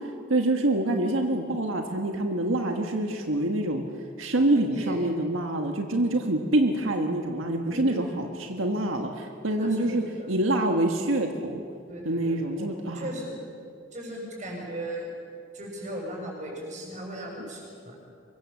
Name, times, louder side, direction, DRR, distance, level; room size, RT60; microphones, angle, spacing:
voice 1, 0.3-3.8 4.2-10.0 10.3-11.6 12.0-13.1 17.4-17.5, right 1 dB, 90° right, 3 dB, 1.6 m, -26 dB
voice 2, 4.5-5.0 7.7-8.2 9.5-10.3 11.9-13.4 13.9-15.1 15.5-18.0, right 1 dB, 40° right, -1 dB, 7.3 m, -37 dB
25.0 x 22.5 x 7.4 m, 2.4 s
head